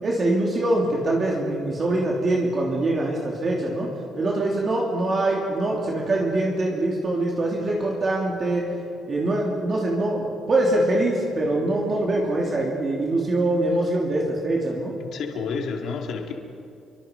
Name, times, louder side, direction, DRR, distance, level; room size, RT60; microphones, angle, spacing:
voice 1, 0.0-8.7 9.1-14.9, right 2 dB, 30° right, -2 dB, 2.8 m, -24 dB
voice 2, 15.0-16.3, left 5 dB, 55° left, 2 dB, 2.3 m, -30 dB
29.0 x 24.0 x 5.2 m, 2.4 s
cardioid pair, 170°, 0 cm